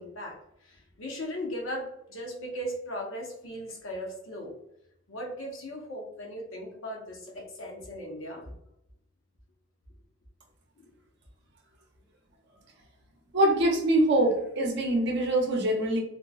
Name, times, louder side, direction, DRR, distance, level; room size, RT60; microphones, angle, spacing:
voice 1, 0.0-4.5 5.1-8.5 10.8-10.9, equal, 80° left, -1 dB, 0.8 m, -38 dB
voice 2, 13.3-16.0, right 1 dB, 60° right, 1 dB, 0.6 m, -24 dB
3.1 x 2.0 x 2.3 m, 0.78 s
head